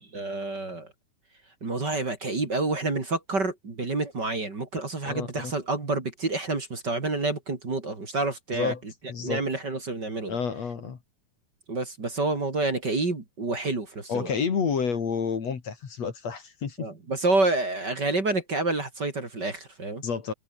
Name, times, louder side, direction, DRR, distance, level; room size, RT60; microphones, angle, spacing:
voice 1, 0.1-0.9 1.6-8.7 9.2-10.4 11.7-14.3 16.8-20.0, right 2 dB, 35° right, 3.7 m, -28 dB
voice 2, 5.0-5.5 8.5-8.8 9.1-9.4 10.3-11.0 14.1-16.9 20.0-20.3, left 6 dB, 55° left, 3.8 m, -29 dB
omnidirectional pair, 3.6 m